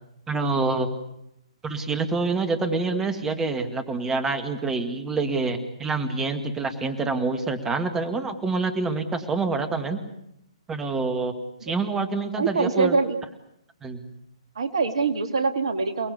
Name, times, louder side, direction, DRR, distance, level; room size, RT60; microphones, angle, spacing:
voice 1, 0.3-0.9 1.6-10.0 10.7-11.3 11.6-13.0 13.8-14.1, right 3 dB, 10° right, 7 dB, 2.2 m, -26 dB
voice 2, 12.4-13.2 14.6-16.1, right 4 dB, 60° right, 7 dB, 2.4 m, -24 dB
29.0 x 19.0 x 8.4 m, 0.78 s
figure-of-eight pair, 125°, 3 cm